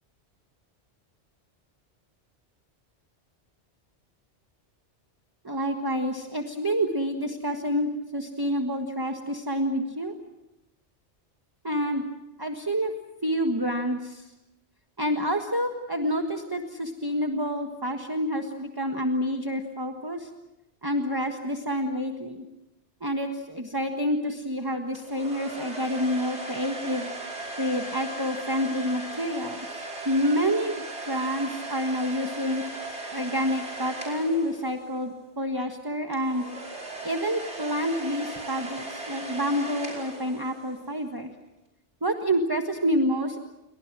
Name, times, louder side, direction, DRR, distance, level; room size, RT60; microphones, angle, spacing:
voice 1, 5.4-10.1 11.6-12.0 12.4-12.9 13.2-14.3 15.0-20.3 20.8-22.4 23.0-27.1 27.6-32.6 33.1-36.5 37.0-41.3 42.0-43.4, equal, 20° right, 4 dB, 1.5 m, -28 dB
sound 1, 24.9-35.1 36.1-40.9, right 2 dB, 70° right, 5.4 m, -38 dB
29.5 x 23.5 x 6.2 m, 0.95 s
omnidirectional pair, 1.2 m